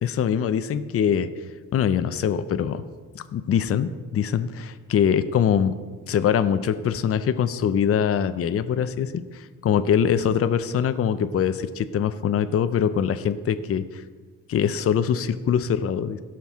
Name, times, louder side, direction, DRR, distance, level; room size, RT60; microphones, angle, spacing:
voice 1, 0.0-1.3 1.7-2.8 3.1-5.7 6.1-14.0 14.5-16.2, left 8 dB, 45° left, 11 dB, 0.5 m, -23 dB
17.0 x 6.0 x 3.6 m, 1.4 s
cardioid pair, 105°, 32 cm